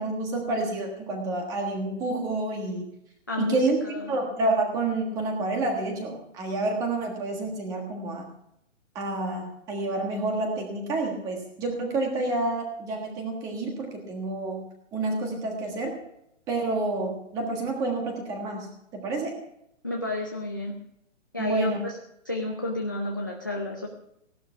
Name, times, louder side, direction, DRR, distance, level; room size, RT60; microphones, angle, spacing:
voice 1, 0.0-2.8 3.4-3.8 4.1-8.2 8.9-14.6 14.9-15.9 16.5-18.7 18.9-19.3 21.4-21.8, right 2 dB, 10° right, 2 dB, 1.5 m, -29 dB
voice 2, 3.3-3.7 3.9-4.2 19.8-20.8 21.3-21.9 22.3-23.9, left 2 dB, 15° left, 0 dB, 0.5 m, -31 dB
17.0 x 11.5 x 5.7 m, 0.79 s
hypercardioid pair, 175°, 38 cm